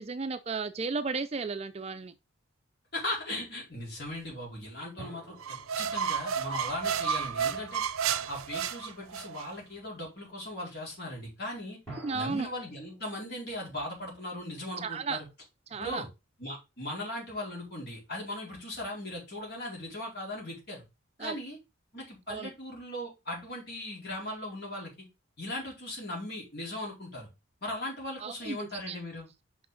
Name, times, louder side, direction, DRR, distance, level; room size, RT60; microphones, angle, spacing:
voice 1, 0.0-2.1 12.0-12.5 14.8-15.2 15.7-16.0 21.2-21.4 22.3-22.5 28.2-29.0, right 4 dB, 30° right, 0.4 m, -34 dB
voice 2, 2.9-7.8 8.3-11.8 12.1-15.3 15.8-16.1 16.4-20.8 21.2-21.6 21.9-25.1 25.4-27.3 27.6-29.3, left 1 dB, 50° left, 4.3 m, -38 dB
sound 1, 5.0-7.8 11.9-15.1, right 2 dB, 10° left, 4.2 m, -52 dB
sound 2, 5.4-9.5, right 7 dB, 80° right, 0.6 m, -31 dB
6.1 x 5.7 x 3.9 m
head